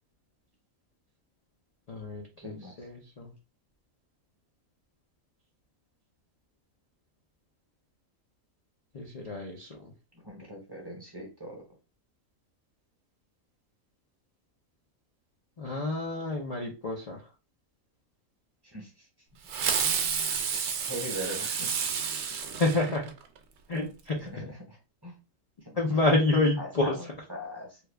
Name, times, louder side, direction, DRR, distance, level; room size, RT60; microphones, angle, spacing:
voice 1, 1.9-3.3 8.9-9.9 15.6-17.2 22.6-23.0 23.7-24.2 25.8-26.9, left 2 dB, 55° left, 0 dB, 0.4 m, -28 dB
voice 2, 2.4-2.9 10.1-11.6 18.6-19.1 19.6-19.7 20.9-21.9 22.9-23.0 24.1-25.2 25.6-26.0 26.6-27.8, equal, 20° right, -1 dB, 0.8 m, -41 dB
Fireworks, 19.5-23.4, right 6 dB, 65° right, 0.8 m, -30 dB
3.0 x 2.3 x 3.2 m, 0.31 s
omnidirectional pair, 1.4 m